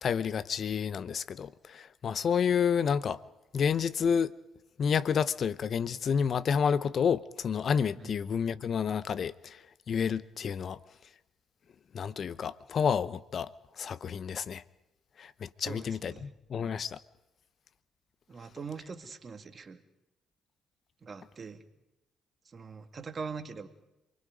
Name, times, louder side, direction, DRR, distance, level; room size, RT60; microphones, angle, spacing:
voice 1, 0.0-3.2 3.5-4.3 4.8-9.6 9.9-10.8 11.9-13.5 13.8-14.6 15.2-17.0, left 7 dB, 55° left, 16 dB, 0.8 m, -29 dB
voice 2, 15.6-16.3 18.3-19.8 21.0-21.6 22.5-23.7, right 5 dB, 40° right, 9 dB, 2.1 m, -42 dB
27.5 x 21.5 x 5.2 m, 0.93 s
hypercardioid pair, 50°, 0 cm